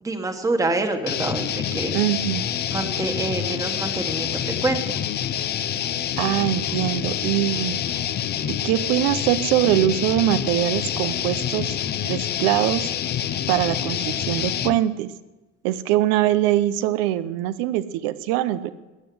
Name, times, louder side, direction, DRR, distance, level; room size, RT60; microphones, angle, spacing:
voice 1, 0.0-2.0 2.7-5.0, right 2 dB, 10° right, 5 dB, 1.3 m, -26 dB
sound 1, 1.1-14.8, left 10 dB, 30° left, 0.6 m, -27 dB
voice 2, 1.9-2.5 6.2-7.8 8.5-11.8 12.0-12.9 13.5-15.1 15.6-18.7, right 13 dB, 80° right, 13 dB, 0.8 m, -22 dB
14.0 x 9.8 x 7.8 m, 1.1 s
cardioid pair, 160°, 31 cm